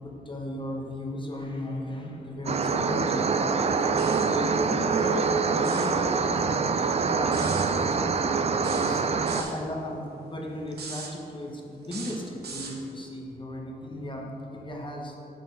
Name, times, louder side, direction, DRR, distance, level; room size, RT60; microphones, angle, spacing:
voice 1, 0.0-8.4 8.7-15.2, left 1 dB, 30° left, -1 dB, 1.0 m, -36 dB
sound 1, 2.5-9.4, right 5 dB, 40° right, 0.4 m, -25 dB
sound 2, 4.0-4.3 5.5-6.0 7.3-7.7 8.6-9.6 10.7-11.1 11.8-12.8, right 4 dB, 85° right, 0.8 m, -39 dB
6.4 x 4.3 x 5.2 m, 2.9 s
cardioid pair, 70°, 16 cm